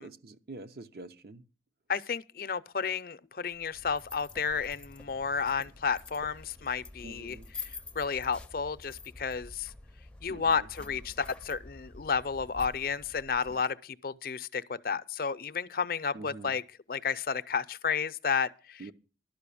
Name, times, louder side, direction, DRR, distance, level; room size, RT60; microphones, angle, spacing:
voice 1, 0.0-1.4 7.0-7.5 10.3-10.7 16.1-16.5 18.8-18.9, right 2 dB, 55° right, 0.7 m, -46 dB
voice 2, 1.9-7.4 8.0-9.7 10.2-16.6 16.9-18.9, left 6 dB, 55° left, 0.5 m, -32 dB
sound 1, 3.5-13.6, left 3 dB, 5° left, 0.5 m, -48 dB
12.0 x 5.6 x 8.4 m
head